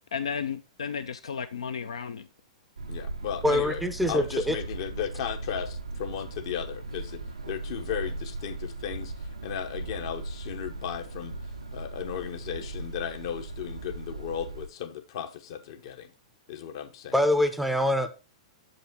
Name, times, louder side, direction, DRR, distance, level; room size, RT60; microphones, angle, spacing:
voice 1, 0.1-2.3, left 6 dB, 65° left, 0.4 m, -33 dB
sound 1, 2.8-14.7, right 2 dB, 75° right, 0.6 m, -38 dB
voice 2, 2.9-11.4 11.7-16.1 16.5-17.1, left 9 dB, 50° left, 0.9 m, -35 dB
voice 3, 3.4-4.6 17.1-18.1, left 1 dB, ahead, 0.5 m, -24 dB
7.0 x 5.3 x 3.5 m
figure-of-eight pair, 100°, 3 cm